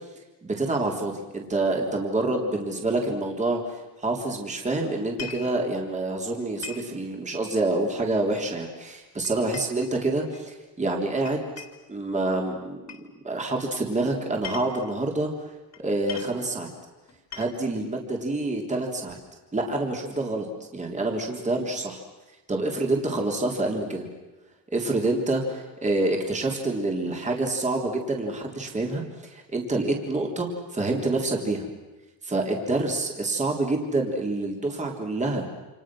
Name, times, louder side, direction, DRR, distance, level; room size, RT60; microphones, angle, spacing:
voice 1, 0.4-11.5 11.9-15.3 15.8-16.7 17.3-19.2 19.5-20.5 20.7-22.0 22.5-24.0 24.7-31.7 32.2-35.5, right 2 dB, 15° right, 1 dB, 3.6 m, -27 dB
sound 1, 5.0-5.5 6.6-6.9 8.3-8.7 9.2-10.4 11.2-11.9 12.9-13.1 14.2-14.9 15.7-15.8 16.1-16.4 17.1-17.7, left 8 dB, 40° left, 3.4 m, -41 dB
28.5 x 28.0 x 6.3 m, 1.1 s
cardioid pair, 150°, 40 cm